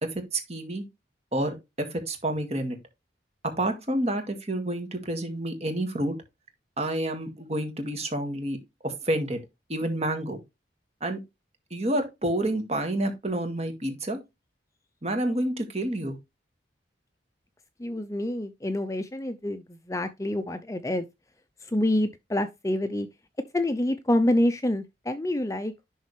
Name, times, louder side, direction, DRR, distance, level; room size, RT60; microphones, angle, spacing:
voice 1, 0.0-0.8 1.3-2.8 3.4-6.2 6.8-8.6 8.8-9.4 9.7-10.4 11.0-11.2 11.7-14.2 15.0-16.2, right 1 dB, 35° right, 1.9 m, -29 dB
voice 2, 17.8-21.1 21.6-23.1 23.5-25.7, left 1 dB, 15° left, 0.5 m, -27 dB
11.0 x 4.0 x 3.2 m
head